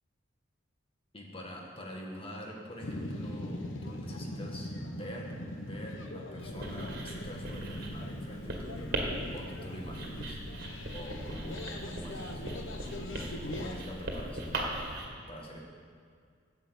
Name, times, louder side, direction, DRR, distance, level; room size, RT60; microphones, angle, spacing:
voice 1, 1.1-10.4 10.9-15.6, equal, 30° left, 0 dB, 1.7 m, -45 dB
sound 1, 2.8-13.8, left 1 dB, 85° left, 0.9 m, -41 dB
Writing, 6.4-15.0, right 1 dB, 55° right, 1.9 m, -39 dB
10.5 x 7.7 x 8.2 m, 2.1 s
head